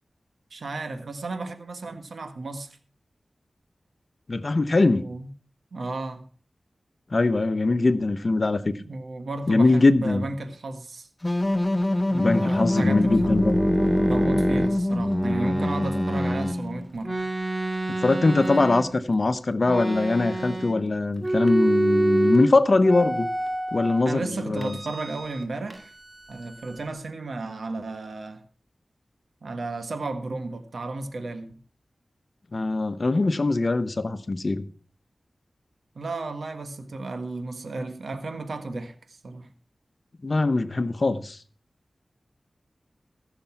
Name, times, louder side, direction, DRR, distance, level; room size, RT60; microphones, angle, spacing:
voice 1, 0.5-2.8 4.9-5.3 5.7-6.2 8.8-11.1 12.1-13.5 14.0-17.2 24.0-25.9 26.3-28.4 29.4-31.6 35.9-39.5, right 2 dB, 80° right, 1.5 m, -34 dB
voice 2, 4.3-5.0 7.1-8.7 9.5-10.2 12.1-13.6 17.9-23.3 23.7-24.8 32.5-34.6 40.2-41.4, left 3 dB, 50° left, 1.0 m, -22 dB
sound 1, 11.2-16.9, left 1 dB, 20° left, 0.9 m, -25 dB
sound 2, 13.0-16.6 17.0-19.1 19.6-20.9 21.2-22.5 22.8-24.0 24.6-25.4 25.7-26.9, right 1 dB, 20° right, 2.3 m, -27 dB
15.0 x 6.9 x 5.8 m
wide cardioid pair, 55°, 0 cm